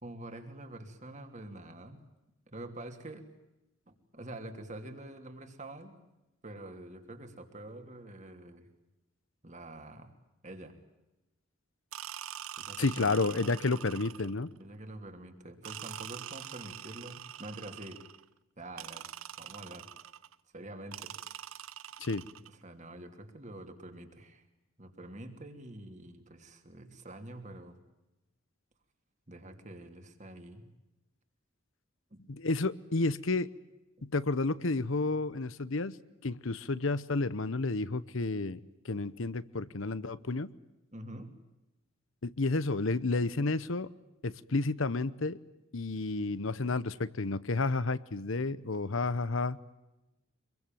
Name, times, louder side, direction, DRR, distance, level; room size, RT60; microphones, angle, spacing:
voice 1, 0.0-2.0 2.5-3.2 3.9-6.0 6.4-8.7 9.4-10.1 10.4-10.8 12.6-13.2 14.6-18.0 18.6-19.1 19.4-19.9 20.5-21.1 22.5-24.4 24.8-27.8 29.3-30.7 40.9-41.4, right 1 dB, 35° right, 6 dB, 2.9 m, -46 dB
sound 1, 11.9-14.5 15.6-18.2 18.8-20.4 20.9-22.6, right 11 dB, 85° right, 0.8 m, -44 dB
voice 2, 12.8-14.5 22.0-22.3 32.3-33.5 34.0-36.0 36.2-38.6 38.8-40.5 42.2-43.9 44.2-45.4 45.7-49.6, left 3 dB, 70° left, 16 dB, 0.9 m, -31 dB
25.0 x 22.5 x 9.1 m, 0.97 s
head